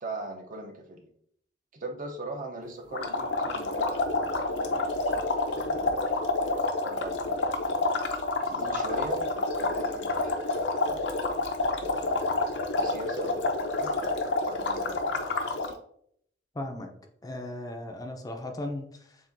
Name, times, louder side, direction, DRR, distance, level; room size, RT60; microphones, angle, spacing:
voice 1, 0.0-1.1 1.7-5.9 6.8-7.9 8.5-11.0 11.8-15.3, right 2 dB, 45° right, 3 dB, 0.6 m, -41 dB
sound 1, 2.9-15.7, left 2 dB, 70° left, 0.6 m, -28 dB
voice 2, 16.5-16.9 17.2-19.2, left 1 dB, 20° left, 4 dB, 0.4 m, -36 dB
7.2 x 2.5 x 2.5 m, 0.68 s
head